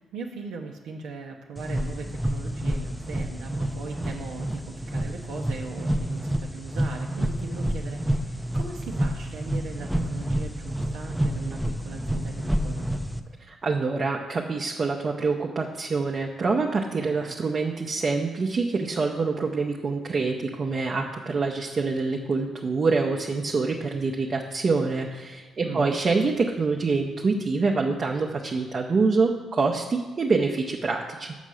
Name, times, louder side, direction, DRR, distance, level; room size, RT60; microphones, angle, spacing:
voice 1, 0.0-12.9 17.0-17.4 25.6-26.0, right 5 dB, 85° right, -1 dB, 0.7 m, -39 dB
sound 1, 1.6-13.2, equal, 5° right, 0.6 m, -29 dB
voice 2, 13.5-31.4, right 4 dB, 40° right, 0 dB, 0.8 m, -26 dB
7.2 x 5.5 x 6.3 m, 1.4 s
cardioid pair, 90°, 0 cm